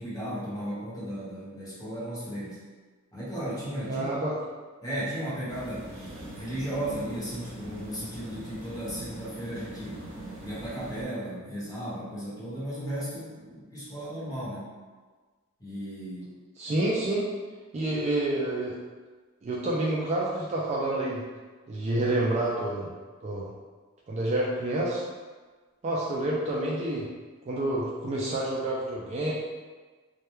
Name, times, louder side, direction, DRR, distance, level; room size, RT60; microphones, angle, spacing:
voice 1, 0.0-2.6 3.1-4.1 4.8-5.9 6.3-10.0 10.4-14.7 15.6-16.3, right 1 dB, 20° left, -10 dB, 0.9 m, -35 dB
voice 2, 3.8-4.3 16.6-17.3 17.7-18.8 19.4-21.2 21.7-22.9 23.2-23.5 24.1-25.0 25.8-27.1 27.5-29.3, right 1 dB, 35° right, -4 dB, 0.3 m, -28 dB
sound 1, 5.5-11.0, right 1 dB, 75° right, 0.6 m, -42 dB
2.2 x 2.1 x 3.0 m, 1.4 s
head